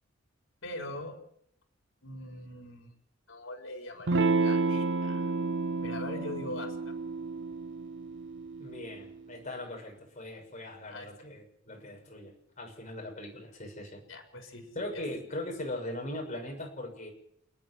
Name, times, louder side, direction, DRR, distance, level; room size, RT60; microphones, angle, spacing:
voice 1, 0.6-1.2 2.0-2.9 3.3-5.3 5.8-6.9 10.9-11.1 14.1-14.7 14.9-15.0, left 1 dB, 85° left, 3 dB, 4.1 m, -41 dB
Electric guitar / Strum, 4.1-9.2, right 3 dB, 65° right, 0.7 m, -30 dB
voice 2, 8.6-14.0 14.7-17.1, left 1 dB, 40° left, 1 dB, 6.5 m, -40 dB
28.5 x 10.0 x 9.6 m, 0.73 s
head